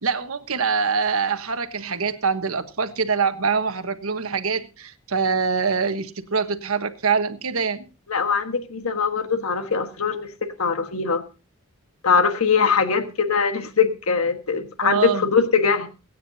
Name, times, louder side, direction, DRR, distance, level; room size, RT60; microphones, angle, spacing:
voice 1, 0.0-7.8 14.8-15.3, right 5 dB, 75° right, 9 dB, 1.2 m, -24 dB
voice 2, 8.1-11.2 12.0-15.9, left 5 dB, 90° left, 7 dB, 1.4 m, -22 dB
23.5 x 9.4 x 2.7 m, 0.32 s
head